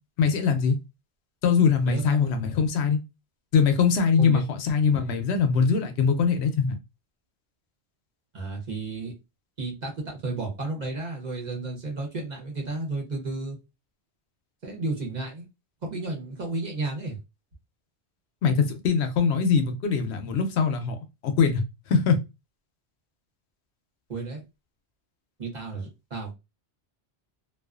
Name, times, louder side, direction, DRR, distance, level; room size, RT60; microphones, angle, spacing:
voice 1, 0.2-0.8 1.4-3.0 3.5-6.8 18.4-21.0 21.2-21.6 21.9-22.2, left 6 dB, 80° left, 0.8 m, -22 dB
voice 2, 1.9-2.3 4.2-4.4 8.3-9.2 9.6-13.6 14.6-15.4 15.8-17.2 24.1-24.4 25.4-26.3, right 3 dB, 45° right, 0.9 m, -32 dB
2.4 x 2.3 x 2.3 m
omnidirectional pair, 1.1 m